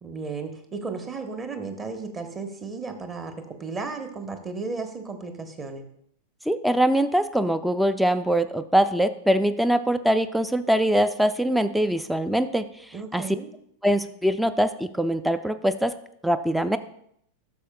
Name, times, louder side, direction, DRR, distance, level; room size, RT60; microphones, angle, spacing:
voice 1, 0.0-5.9 12.9-13.5, right 4 dB, 20° right, 7 dB, 1.0 m, -34 dB
voice 2, 6.5-12.7 13.1-13.2 13.8-15.9 16.2-16.8, right 1 dB, ahead, 12 dB, 0.3 m, -23 dB
12.0 x 6.5 x 2.2 m, 0.71 s
figure-of-eight pair, 90°, 0 cm